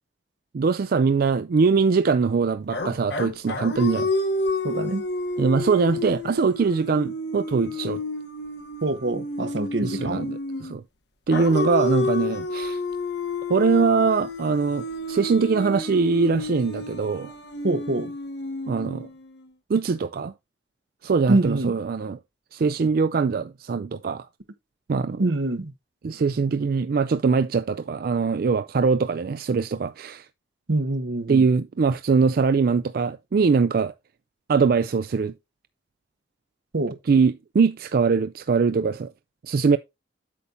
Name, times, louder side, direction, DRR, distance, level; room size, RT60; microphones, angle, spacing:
voice 1, 0.5-4.1 5.4-8.0 9.8-10.8 11.3-12.8 13.5-17.3 18.7-19.1 19.7-20.3 21.0-22.2 22.5-24.3 24.9-25.2 26.0-30.3 31.3-33.9 34.5-35.3 37.1-39.1 39.4-39.8, right 5 dB, 55° right, 0.4 m, -22 dB
sound 1, 2.7-10.8 11.3-19.4, left 2 dB, 75° left, 1.3 m, -30 dB
voice 2, 4.6-5.0 8.8-10.3 17.6-18.1 21.3-21.7 25.2-25.7 30.7-31.4 36.7-37.0, right 2 dB, 80° right, 1.0 m, -25 dB
8.4 x 6.9 x 2.6 m
head